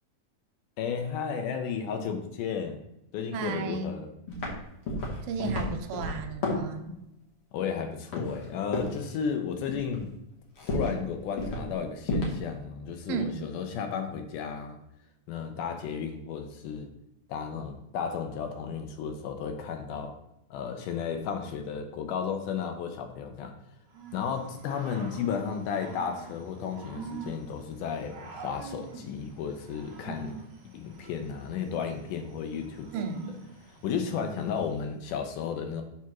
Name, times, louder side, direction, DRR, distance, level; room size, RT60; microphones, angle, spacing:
voice 1, 0.8-2.8 3.1-4.1 7.5-10.1 10.7-14.8 15.3-16.9 17.3-20.2 20.5-23.5 24.1-30.3 30.7-32.9 33.8-35.8, left 6 dB, 75° left, 5 dB, 2.1 m, -33 dB
voice 2, 3.3-3.9 5.2-7.0 13.1-13.4 32.9-33.3, right 5 dB, 85° right, 6 dB, 2.4 m, -33 dB
sound 1, 4.3-4.6 4.9-6.8 8.1-8.5 8.7-9.0 9.7-10.0 10.6-11.0 11.4-11.7 12.0-12.4, left 1 dB, 50° left, 1.9 m, -31 dB
Growling / Cricket, 23.9-34.8, right 4 dB, 50° right, 1.9 m, -46 dB
7.4 x 3.5 x 5.9 m, 0.85 s
omnidirectional pair, 4.0 m